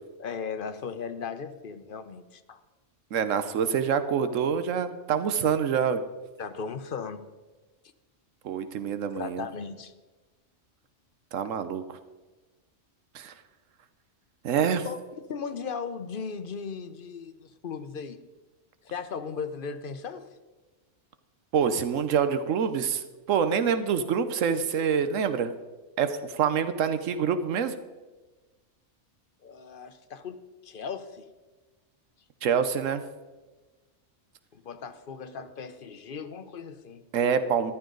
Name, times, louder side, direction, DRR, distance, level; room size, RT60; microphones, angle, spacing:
voice 1, 0.2-2.6 6.4-7.2 9.1-9.9 14.8-18.2 18.8-20.3 26.5-26.7 29.4-30.4 30.6-31.3 34.5-37.0, left 5 dB, 50° left, 10 dB, 0.9 m, -37 dB
voice 2, 3.1-6.0 8.4-9.5 11.3-11.8 13.1-13.3 14.4-14.9 21.5-25.5 26.0-27.8 32.4-33.0 37.1-37.7, right 7 dB, 85° right, 10 dB, 1.1 m, -26 dB
14.5 x 12.0 x 3.9 m, 1.2 s
omnidirectional pair, 1.3 m